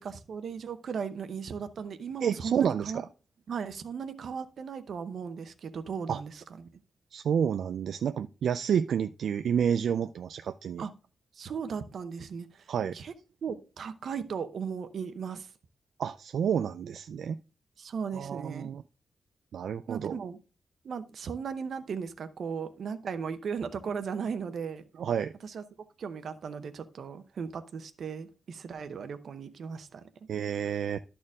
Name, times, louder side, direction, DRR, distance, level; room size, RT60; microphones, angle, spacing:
voice 1, 0.0-3.0 3.5-6.7 10.8-10.9 11.4-13.1 13.4-15.5 17.8-18.7 19.9-20.4 20.8-24.9 25.4-25.6 26.0-30.0, right 6 dB, 60° right, 0.7 m, -37 dB
voice 2, 2.2-3.1 6.1-6.2 7.1-10.8 12.7-13.0 16.0-17.4 18.1-18.8 19.5-20.2 25.0-25.3 30.3-31.0, right 8 dB, 80° right, 0.3 m, -29 dB
12.5 x 4.4 x 3.5 m
wide cardioid pair, 170°, 0 cm